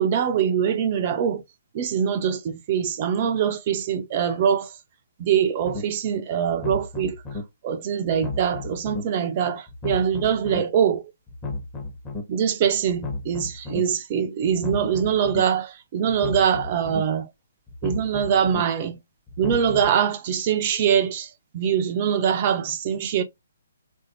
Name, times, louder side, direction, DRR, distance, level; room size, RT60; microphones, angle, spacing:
voice 1, 0.0-1.4 1.7-4.8 5.2-7.2 7.6-11.1 12.3-17.3 17.8-19.0 19.4-23.2, right 8 dB, 35° right, 0.4 m, -23 dB
sound 1, 5.6-5.8 6.5-7.4 8.1-9.0 9.7-10.6 11.3-12.2 12.9-13.8 14.5-15.4 16.1-17.0 17.7-18.6 19.3-20.0, left 3 dB, 15° left, 0.8 m, -33 dB
3.3 x 2.6 x 2.5 m
figure-of-eight pair, 130°, 0 cm